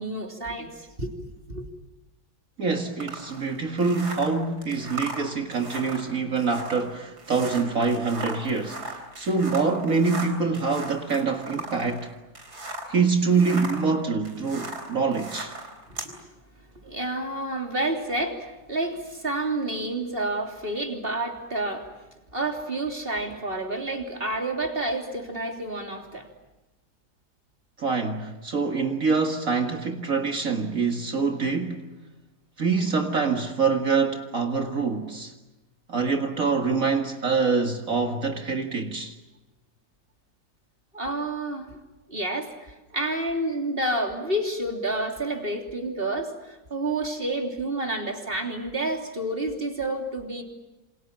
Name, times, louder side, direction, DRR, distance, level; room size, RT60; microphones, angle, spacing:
voice 1, 0.0-1.7 16.1-16.2 16.8-21.9 22.3-26.3 40.9-41.7 42.1-50.4, right 2 dB, 30° right, 3.5 m, -29 dB
voice 2, 2.6-12.1 12.9-15.5 27.8-31.9 32.6-35.3 35.9-39.2, right 4 dB, 55° right, 2.2 m, -25 dB
sound 1, 3.0-13.0 13.3-16.1, right 2 dB, 70° right, 4.5 m, -38 dB
28.0 x 27.0 x 7.4 m
omnidirectional pair, 1.8 m